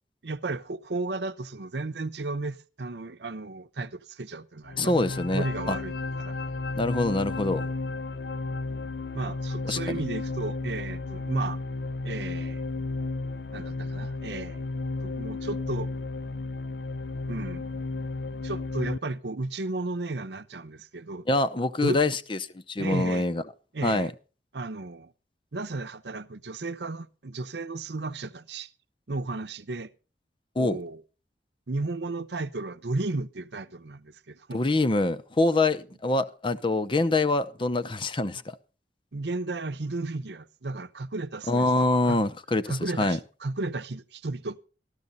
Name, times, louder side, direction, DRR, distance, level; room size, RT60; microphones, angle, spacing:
voice 1, 0.2-4.9 5.3-6.4 9.1-11.6 12.0-12.6 13.5-14.6 15.0-15.9 17.3-17.6 18.4-21.3 21.8-22.0 22.8-23.3 23.7-24.1 24.5-25.1 25.5-28.7 29.1-29.9 30.6-31.0 31.7-34.6 39.1-41.7 42.0-42.2 42.7-44.6, right 2 dB, 75° right, 0.8 m, -34 dB
sound 1, 4.6-19.0, left 3 dB, 65° left, 0.6 m, -33 dB
voice 2, 4.8-5.8 6.8-7.6 9.6-10.0 21.3-22.4 22.7-23.4 23.8-24.1 30.6-30.8 34.5-38.6 41.5-42.6 43.0-43.2, left 2 dB, 30° left, 0.7 m, -25 dB
13.5 x 13.5 x 4.1 m
head